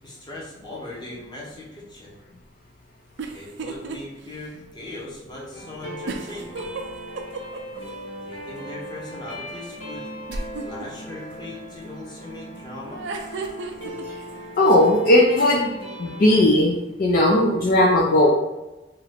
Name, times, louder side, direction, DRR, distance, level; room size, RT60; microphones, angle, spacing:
voice 1, 0.0-2.2 3.3-6.7 8.2-10.1 10.6-13.0, left 2 dB, 25° left, -5 dB, 0.9 m, -39 dB
sound 1, 3.2-4.0 4.4-4.5 6.1-7.8 10.3-10.9 12.9-14.0, right 3 dB, 75° right, 0.4 m, -32 dB
sound 2, 5.5-16.4, equal, 90° left, 0.8 m, -38 dB
voice 2, 14.6-15.7 16.0-16.7 17.0-18.3, left 1 dB, 50° left, -2 dB, 0.4 m, -17 dB
3.0 x 2.4 x 3.3 m, 1.0 s
head